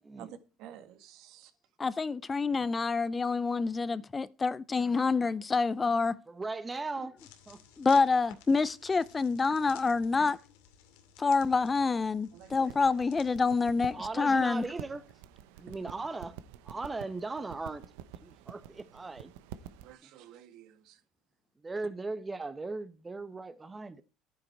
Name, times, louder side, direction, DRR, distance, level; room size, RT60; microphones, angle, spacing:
voice 1, 0.2-1.5 12.3-12.7 19.8-21.0, right 10 dB, 65° right, 1.8 m, -51 dB
voice 2, 1.8-6.2 7.8-10.4 11.2-14.6, left 4 dB, 20° left, 0.5 m, -27 dB
voice 3, 6.3-7.2 7.5-7.6 13.9-15.0 15.6-16.3 16.6-17.8 18.2-19.3 21.6-24.0, right 3 dB, 15° right, 1.0 m, -38 dB
sound 1, 7.2-13.9, left 9 dB, 85° left, 2.3 m, -56 dB
sound 2, 12.5-19.9, right 10 dB, 85° right, 0.9 m, -48 dB
11.5 x 9.5 x 4.6 m
supercardioid pair, 105°, 0 cm